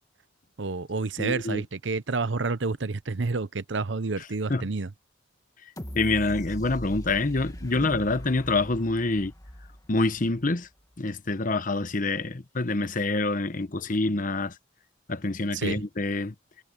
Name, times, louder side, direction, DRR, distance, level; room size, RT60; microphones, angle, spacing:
voice 1, 0.6-4.9 7.8-8.0 15.5-15.8, right 3 dB, 75° right, 0.8 m, -29 dB
voice 2, 1.2-1.6 4.5-4.7 5.9-9.3 9.9-10.7 11.0-14.5 15.1-16.3, left 2 dB, 45° left, 1.0 m, -26 dB
sound 1, 5.8-10.6 11.1-11.2, equal, 20° left, 1.8 m, -40 dB
head